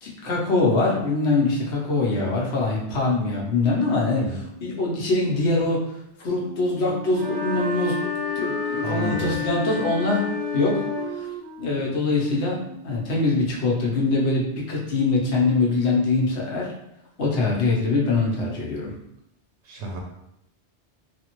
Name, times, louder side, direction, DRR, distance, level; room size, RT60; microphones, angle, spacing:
voice 1, 0.0-4.2 4.6-5.8 6.2-8.0 8.4-10.8 11.1-11.3 11.6-12.6 12.8-16.7 17.2-19.0, left 3 dB, 75° left, -4 dB, 1.1 m, -23 dB
Wind instrument woodwind instrument, 6.2-13.1, right 2 dB, 60° right, 0.3 m, -36 dB
sound 1, 7.2-11.1, left 7 dB, 55° left, 0.4 m, -30 dB
voice 2, 8.8-9.4 19.6-20.0, right 1 dB, 80° right, 0 dB, 0.9 m, -30 dB
3.3 x 2.1 x 2.9 m, 0.82 s
omnidirectional pair, 1.2 m